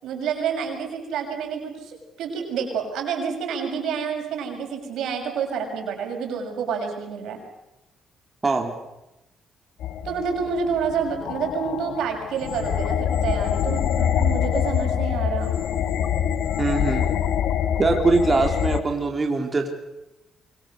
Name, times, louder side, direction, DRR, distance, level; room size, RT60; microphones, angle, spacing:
voice 1, 0.0-7.4 10.0-15.5, right 6 dB, 80° right, 3 dB, 6.5 m, -28 dB
voice 2, 8.4-8.7 16.6-17.1 17.8-19.7, right 3 dB, 30° right, 3 dB, 3.4 m, -22 dB
sound 1, 9.8-18.8, left 9 dB, 80° left, 1.4 m, -25 dB
25.0 x 24.0 x 6.7 m, 0.95 s
cardioid pair, 90°, 0 cm